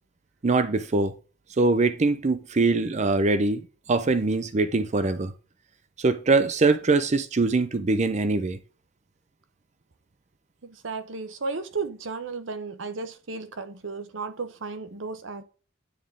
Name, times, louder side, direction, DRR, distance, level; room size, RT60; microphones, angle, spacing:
voice 1, 0.4-1.1 1.6-3.6 3.9-5.3 6.0-8.6, right 3 dB, 35° right, 0.5 m, -23 dB
voice 2, 10.6-15.4, right 4 dB, 70° right, 0.9 m, -34 dB
9.4 x 3.6 x 3.7 m
head